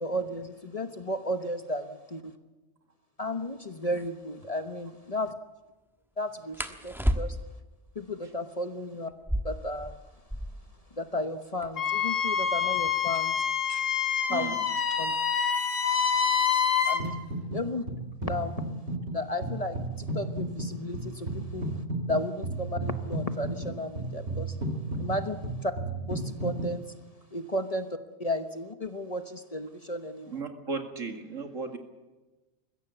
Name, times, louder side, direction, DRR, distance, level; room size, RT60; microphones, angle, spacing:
voice 1, 0.0-2.3 3.2-5.3 6.2-7.4 7.9-9.1 9.4-10.0 10.9-13.4 14.3-14.5 15.0-15.1 16.9-17.1 17.5-17.8 18.2-18.6 19.1-21.8 22.1-24.6 25.0-25.7 26.1-26.9 27.3-27.9 28.2-30.4, left 1 dB, 30° left, 8 dB, 1.1 m, -34 dB
sound 1, 3.4-3.5 3.9-4.1 6.5-7.7 9.1-10.8 11.1-11.2 11.4-11.9 12.6-15.1 16.1-16.4 16.9-17.3 17.7-18.4, equal, ahead, 1.2 m, -33 dB
Wind instrument woodwind instrument, 11.8-17.0, left 7 dB, 75° left, 2.0 m, -26 dB
voice 2, 14.3-14.6 30.3-31.8, right 4 dB, 80° right, 5 dB, 2.6 m, -35 dB
sound 2, 17.0-17.6 17.9-26.7, right 2 dB, 55° right, 2.8 m, -33 dB
21.5 x 15.5 x 8.4 m, 1.1 s
omnidirectional pair, 1.3 m